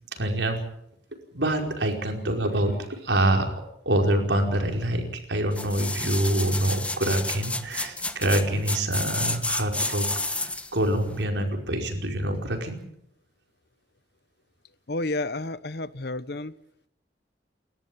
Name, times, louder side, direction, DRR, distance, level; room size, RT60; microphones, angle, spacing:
voice 1, 0.1-0.6 1.3-3.5 3.8-10.0 10.3-12.8, right 1 dB, 90° right, 3 dB, 5.0 m, -26 dB
sound 1, 5.5-10.8 11.2-11.3, left 2 dB, 5° left, 1.3 m, -30 dB
voice 2, 14.9-16.5, left 2 dB, 60° left, 16 dB, 1.0 m, -31 dB
29.5 x 13.5 x 8.8 m, 0.76 s
head